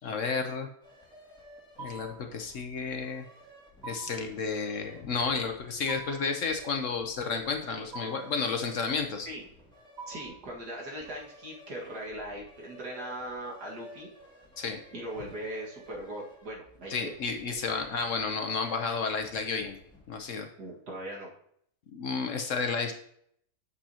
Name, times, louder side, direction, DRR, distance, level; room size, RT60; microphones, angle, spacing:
voice 1, 0.0-0.7 1.8-3.2 3.8-9.3 14.6-14.8 16.9-19.8 20.1-20.5 21.9-22.9, left 5 dB, 60° left, 5 dB, 1.0 m, -31 dB
sound 1, 0.8-20.2, equal, 5° left, 2.2 m, -54 dB
sound 2, 1.8-2.3 3.8-4.3 5.9-6.4 7.9-8.4 10.0-10.5, right 4 dB, 55° right, 1.7 m, -44 dB
voice 2, 10.1-14.1 14.9-17.1 20.6-21.3, right 1 dB, 75° right, -3 dB, 2.4 m, -39 dB
8.8 x 6.9 x 2.9 m, 0.68 s
omnidirectional pair, 1.7 m